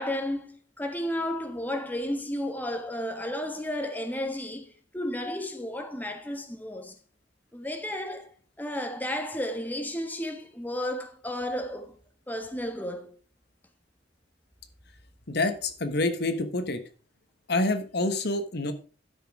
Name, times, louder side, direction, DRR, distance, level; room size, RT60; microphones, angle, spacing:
voice 1, 0.0-7.0 7.5-8.3 8.6-12.0 12.3-13.2, left 1 dB, 10° left, 1.3 m, -33 dB
voice 2, 15.3-16.8 17.5-18.7, left 2 dB, 60° left, 1.3 m, -27 dB
12.0 x 6.2 x 4.7 m
head